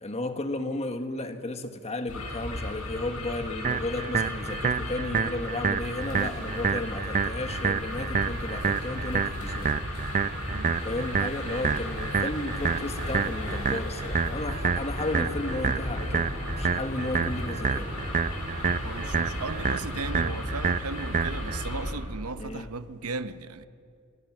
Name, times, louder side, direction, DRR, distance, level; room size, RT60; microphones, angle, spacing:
voice 1, 0.0-9.7 10.8-16.3 16.6-17.9 22.4-22.7, left 2 dB, 30° left, 1.3 m, -33 dB
sound 1, 2.1-21.9, left 1 dB, 85° left, 6.7 m, -35 dB
sound 2, 3.6-21.6, right 5 dB, 35° right, 0.5 m, -29 dB
voice 2, 10.5-10.8 18.7-23.7, right 4 dB, 75° right, 0.8 m, -36 dB
28.5 x 19.0 x 6.1 m
head